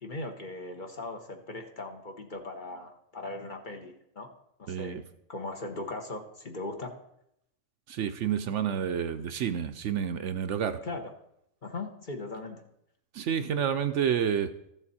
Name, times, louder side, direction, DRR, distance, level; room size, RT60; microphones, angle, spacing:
voice 1, 0.0-4.3 4.6-5.0 5.3-6.9 10.8-11.1 11.6-12.6, left 2 dB, 40° left, 4 dB, 1.1 m, -39 dB
voice 2, 4.7-5.0 7.9-10.8 13.1-14.5, right 8 dB, 65° right, 9 dB, 0.9 m, -29 dB
14.0 x 7.1 x 4.2 m, 0.77 s
omnidirectional pair, 1.4 m